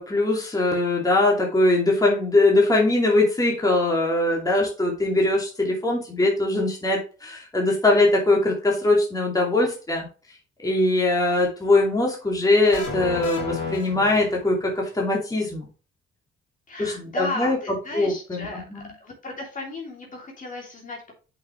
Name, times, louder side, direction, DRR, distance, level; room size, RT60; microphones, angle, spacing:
voice 1, 0.0-10.1 10.6-15.7 16.8-17.6 17.9-18.9, left 2 dB, 20° left, -2 dB, 2.6 m, -21 dB
sound 1, 12.7-14.7, left 4 dB, 90° left, 2.8 m, -32 dB
voice 2, 16.7-21.1, left 2 dB, 40° left, 0 dB, 3.0 m, -35 dB
7.8 x 5.8 x 3.2 m, 0.35 s
cardioid pair, 90°, 20 cm